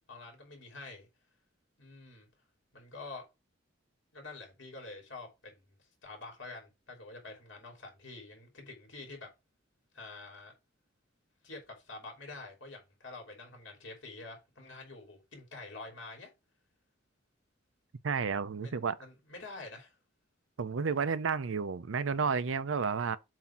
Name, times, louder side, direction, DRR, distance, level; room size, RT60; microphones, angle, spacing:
voice 1, 0.1-1.1 1.8-2.3 2.7-3.2 4.1-5.6 6.0-9.3 9.9-10.5 11.4-16.3 18.6-20.0, left 3 dB, 65° left, 2.9 m, -47 dB
voice 2, 18.0-19.0 20.6-23.2, right 5 dB, 75° right, 0.5 m, -31 dB
7.4 x 2.8 x 5.7 m
head